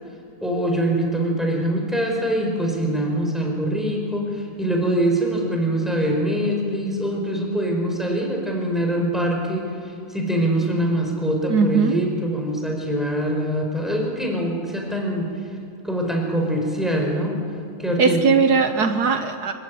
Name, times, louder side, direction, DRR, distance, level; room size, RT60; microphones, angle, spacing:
voice 1, 0.4-15.3 15.8-17.4 17.8-18.2, right 1 dB, ahead, 0 dB, 4.9 m, -23 dB
voice 2, 11.5-12.0 18.0-19.5, right 5 dB, 70° right, 8 dB, 1.5 m, -19 dB
27.0 x 16.0 x 9.3 m, 2.6 s
omnidirectional pair, 1.8 m